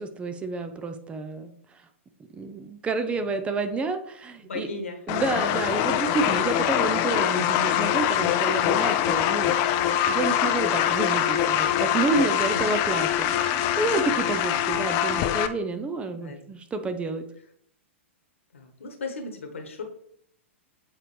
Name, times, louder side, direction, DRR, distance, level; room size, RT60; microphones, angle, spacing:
voice 1, 0.0-1.5 2.3-4.7 5.1-9.6 10.1-17.2, right 3 dB, 15° right, 8 dB, 0.6 m, -29 dB
voice 2, 4.4-5.2 12.5-12.9 16.0-16.4 18.5-19.8, left 3 dB, 70° left, 5 dB, 1.3 m, -37 dB
sound 1, 5.1-15.5, left 10 dB, 35° left, 0.5 m, -24 dB
7.5 x 4.3 x 3.2 m, 0.68 s
figure-of-eight pair, 105°, 7 cm